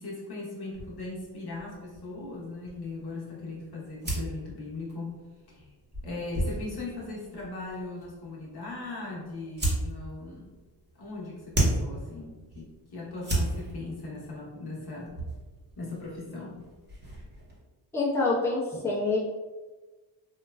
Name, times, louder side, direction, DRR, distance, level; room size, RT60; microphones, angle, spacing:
voice 1, 0.0-5.2 5.5-5.7 6.0-10.5 10.9-15.1 15.7-16.6 18.2-18.4, left 2 dB, 55° left, -4 dB, 1.0 m, -39 dB
sound 1, 0.7-17.6, right 1 dB, 20° right, 0.9 m, -36 dB
voice 2, 17.9-19.2, left 3 dB, 5° left, -7 dB, 0.8 m, -26 dB
3.1 x 2.2 x 2.2 m, 1.2 s
cardioid pair, 70°, 46 cm